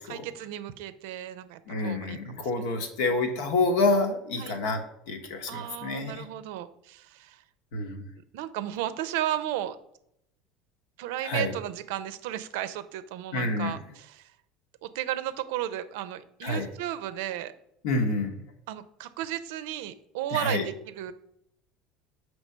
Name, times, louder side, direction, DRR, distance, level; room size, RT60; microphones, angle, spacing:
voice 1, 0.0-2.7 3.0-3.1 4.4-4.6 5.5-7.4 8.3-9.8 11.0-14.3 14.8-17.5 18.7-21.1, right 12 dB, 75° right, 13 dB, 0.5 m, -34 dB
voice 2, 1.7-4.8 5.1-6.2 7.7-8.0 11.2-11.5 13.3-13.8 16.4-16.7 17.8-18.4 20.3-20.6, left 2 dB, 75° left, 6 dB, 1.1 m, -28 dB
6.1 x 3.2 x 5.4 m, 0.76 s
hypercardioid pair, 80°, 0 cm